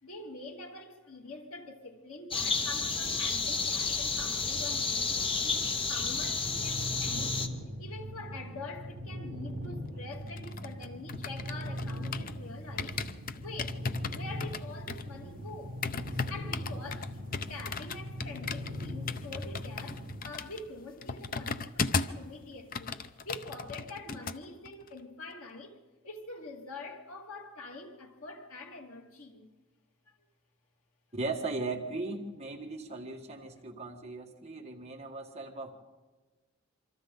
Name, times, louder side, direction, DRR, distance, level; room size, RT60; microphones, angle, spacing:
voice 1, 0.0-7.4 7.8-13.0 13.3-15.8 16.3-25.8 26.0-29.5, left 2 dB, 85° left, 2.6 m, -45 dB
sound 1, 2.3-7.5, left 4 dB, 25° left, 1.1 m, -31 dB
sound 2, 6.4-20.2, equal, 55° right, 7.4 m, -40 dB
sound 3, 10.1-12.4 12.8-22.3 22.5-24.4 24.7-24.9, left 4 dB, 40° left, 0.7 m, -37 dB
voice 2, 31.1-35.8, right 3 dB, 30° right, 1.9 m, -38 dB
27.0 x 25.0 x 4.0 m
head